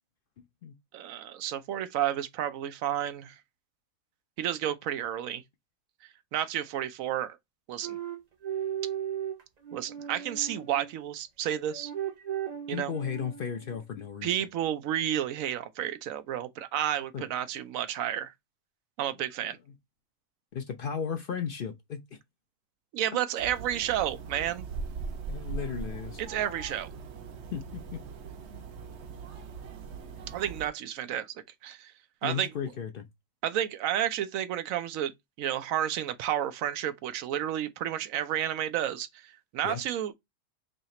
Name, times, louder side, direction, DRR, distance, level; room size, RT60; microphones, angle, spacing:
voice 1, 0.9-3.4 4.4-5.4 6.3-7.4 7.7-8.0 9.7-11.9 12.7-12.9 14.2-18.3 19.0-19.6 22.9-24.7 26.2-26.9 30.3-31.4 31.6-31.9 32.2-32.5 33.4-35.1 35.4-40.1, right 11 dB, 90° right, 1.0 m, -31 dB
sound 1, 7.8-11.0 11.7-13.9, right 10 dB, 45° right, 0.6 m, -36 dB
voice 2, 12.7-14.3 17.1-17.3 20.5-22.0 25.3-26.2 27.5-28.0 32.2-33.1 39.6-39.8, left 7 dB, 60° left, 0.6 m, -35 dB
sound 2, 23.4-30.7, right 4 dB, 65° right, 0.9 m, -40 dB
3.2 x 2.8 x 4.1 m
omnidirectional pair, 1.4 m